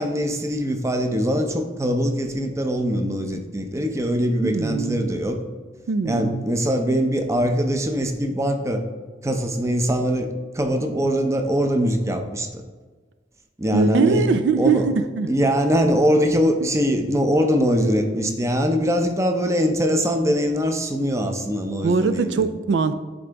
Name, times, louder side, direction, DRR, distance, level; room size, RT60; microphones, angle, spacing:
voice 1, 0.0-5.4 6.0-8.8 9.2-12.6 13.6-14.3 14.6-14.9 15.3-22.5, equal, 15° right, 5 dB, 0.6 m, -22 dB
voice 2, 4.4-5.1 5.9-6.4 13.7-15.3 21.8-22.9, right 4 dB, 75° right, 11 dB, 0.4 m, -21 dB
11.0 x 3.9 x 3.4 m, 1.4 s
head